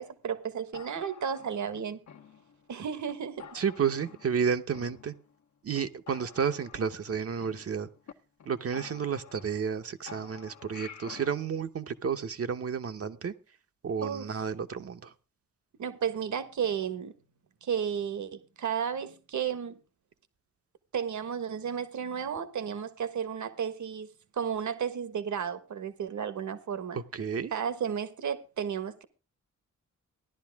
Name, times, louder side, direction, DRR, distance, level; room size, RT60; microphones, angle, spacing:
voice 1, 0.0-2.0 2.7-3.6 14.0-14.3 15.8-17.1 17.6-19.8 20.9-24.1 24.3-27.0 27.5-29.0, right 7 dB, 70° right, 1.4 m, -33 dB
sound 1, 0.7-2.7 3.1-3.2 3.4-4.4 4.7-5.4 5.7-5.8 6.1-8.1 8.4-8.5 8.7-9.8 10.1-11.4, left 8 dB, 65° left, 1.1 m, -50 dB
voice 2, 3.5-5.1 5.6-7.9 8.5-13.3 13.8-15.1 26.9-27.5, right 7 dB, 50° right, 0.9 m, -31 dB
15.0 x 11.5 x 3.5 m
wide cardioid pair, 140°, 30 cm